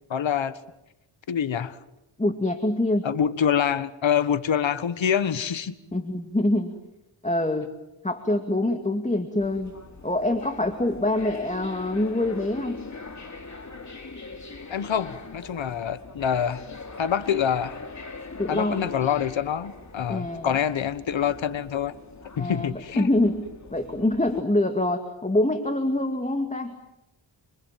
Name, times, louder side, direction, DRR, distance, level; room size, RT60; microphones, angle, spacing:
voice 1, 0.1-0.6 1.3-1.8 3.0-5.7 14.7-16.6 17.0-17.8 18.5-21.9 22.4-23.1, left 8 dB, 75° left, 14 dB, 1.5 m, -26 dB
voice 2, 2.2-3.0 5.9-6.8 7.2-7.7 8.0-9.7 10.0-12.8 18.4-18.8 20.1-20.5 22.4-23.4 23.7-26.8, left 1 dB, 15° left, 6 dB, 2.4 m, -25 dB
sound 1, 9.4-24.4, left 3 dB, 35° left, 3.0 m, -42 dB
27.5 x 26.5 x 7.6 m, 0.88 s
cardioid pair, 80°, 47 cm